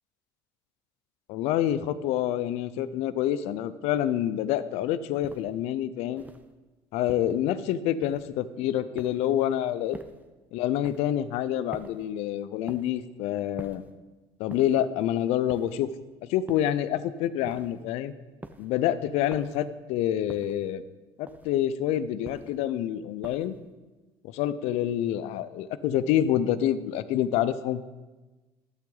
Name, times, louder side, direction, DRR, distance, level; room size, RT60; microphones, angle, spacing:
voice 1, 1.3-6.2 6.9-10.0 10.5-13.8 14.4-15.9 16.2-18.1 18.6-20.8 21.2-23.5 24.2-27.8, left 11 dB, 70° left, 14 dB, 0.6 m, -27 dB
sound 1, 5.2-5.6 6.2-6.5 7.1-7.5 8.0-8.4 9.0-9.4 9.9-10.3 10.8-11.2 11.7-12.1 12.7-13.0 13.6-14.0 14.5-14.9 15.5-15.9 16.5-16.9 17.5-17.9 18.4-18.8 19.3-19.7 20.3-20.7 21.3-21.7 22.2-22.7 23.2-23.7, right 2 dB, 15° right, 0.8 m, -46 dB
12.0 x 8.1 x 3.9 m, 1.2 s
supercardioid pair, 80°, 11 cm